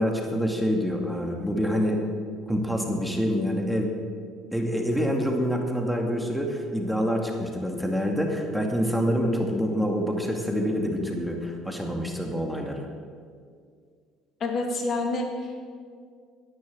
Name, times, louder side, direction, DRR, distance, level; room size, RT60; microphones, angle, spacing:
voice 1, 0.0-2.0 2.5-3.9 4.5-12.9, equal, ahead, 2 dB, 2.4 m, -26 dB
voice 2, 14.4-15.7, left 2 dB, 50° left, 2 dB, 2.5 m, -28 dB
11.0 x 10.5 x 7.8 m, 2.1 s
hypercardioid pair, 70°, 0 cm